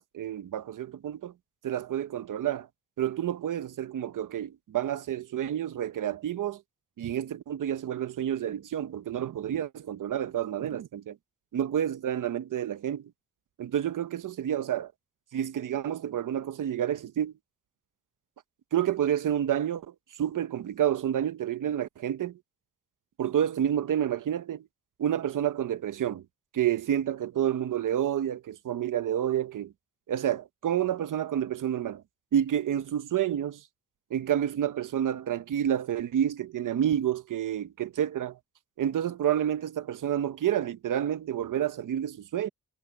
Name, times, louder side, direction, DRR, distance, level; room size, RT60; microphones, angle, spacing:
voice 1, 0.0-1.3 1.6-2.7 3.0-6.6 7.0-11.2 11.5-13.1 13.6-14.9 15.3-17.3 18.7-19.9 20.2-22.4 23.2-24.7 25.0-26.2 26.5-29.7 30.1-32.0 32.3-33.6 34.1-38.4 38.8-42.5, right 10 dB, 85° right, 0.9 m, -29 dB
wide cardioid pair, 125°, 31 cm